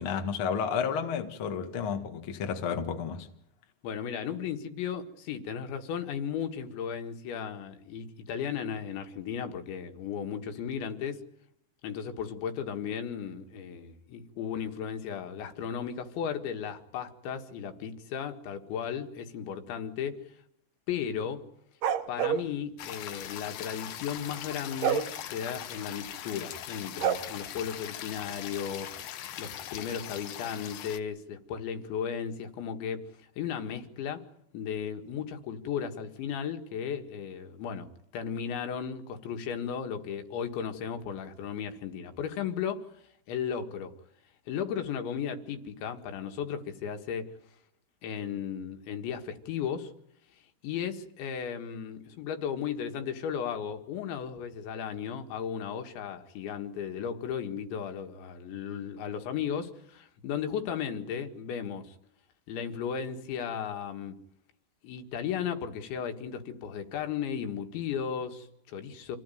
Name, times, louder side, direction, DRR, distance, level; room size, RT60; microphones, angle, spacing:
voice 1, 0.0-3.3, left 7 dB, 45° left, 1.7 m, -31 dB
voice 2, 3.8-11.2 11.8-20.2 20.9-21.4 22.1-29.0 29.4-33.1 33.4-34.3 34.5-42.9 43.3-43.9 44.5-47.3 48.0-49.9 50.6-62.0 62.5-64.2 64.8-69.2, left 8 dB, 85° left, 4.1 m, -35 dB
sound 1, 21.8-22.5 24.8-25.1 27.0-27.2, right 9 dB, 70° right, 2.0 m, -26 dB
sound 2, 22.8-31.0, left 11 dB, 65° left, 2.4 m, -41 dB
27.5 x 16.5 x 9.3 m
omnidirectional pair, 5.1 m